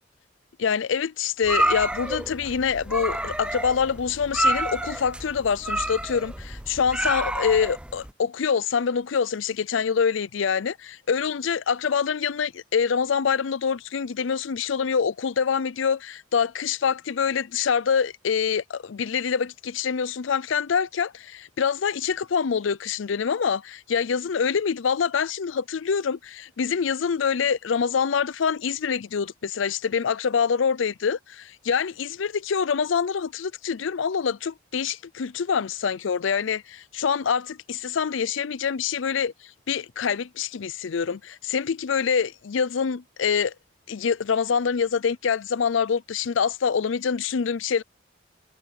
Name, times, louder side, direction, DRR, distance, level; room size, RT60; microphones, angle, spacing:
voice 1, 0.6-39.3 39.7-43.5 43.9-47.8, left 6 dB, 80° left, 0.5 m, -25 dB
sound 1, 1.4-8.1, right 1 dB, 5° right, 0.5 m, -28 dB
head